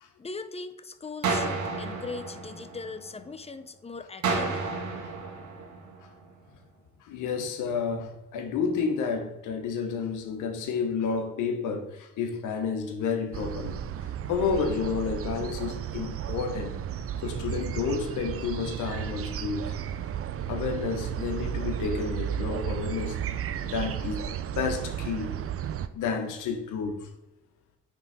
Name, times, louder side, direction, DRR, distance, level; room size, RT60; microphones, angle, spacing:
voice 1, 0.2-4.6, left 4 dB, 20° left, 0.6 m, -40 dB
sound 1, 1.2-3.3 4.2-6.3, right 4 dB, 70° right, 1.8 m, -31 dB
voice 2, 7.0-16.8 17.2-19.8 20.5-23.2 23.6-25.3 25.9-27.1, left 5 dB, 90° left, 1.0 m, -31 dB
sound 2, 13.3-25.9, right 9 dB, 50° right, 0.5 m, -33 dB
9.5 x 3.7 x 4.1 m
cardioid pair, 90°, 30 cm